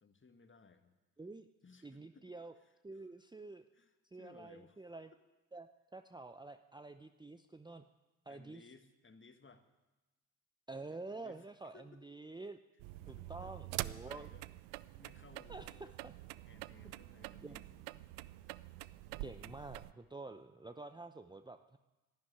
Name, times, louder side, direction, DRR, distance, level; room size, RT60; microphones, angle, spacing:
voice 1, 0.0-0.9 1.6-2.3 2.6-2.7 3.7-4.8 8.3-9.7 10.9-11.5 11.7-12.0 13.0-14.5 15.0-16.0 16.5-18.2 18.4-19.6, left 4 dB, 25° left, 8 dB, 1.8 m, -62 dB
voice 2, 1.2-1.5 1.8-2.5 2.8-3.7 4.1-5.1 5.5-7.8 8.3-8.6 10.7-12.6 13.1-14.3 15.5-16.1 16.8-16.9 17.4-17.6 19.2-21.8, right 3 dB, 10° right, 8 dB, 0.8 m, -49 dB
sound 1, 12.8-19.9, right 18 dB, 80° right, 0.6 m, -46 dB
11.5 x 11.5 x 9.9 m, 1.1 s
hypercardioid pair, 50°, 43 cm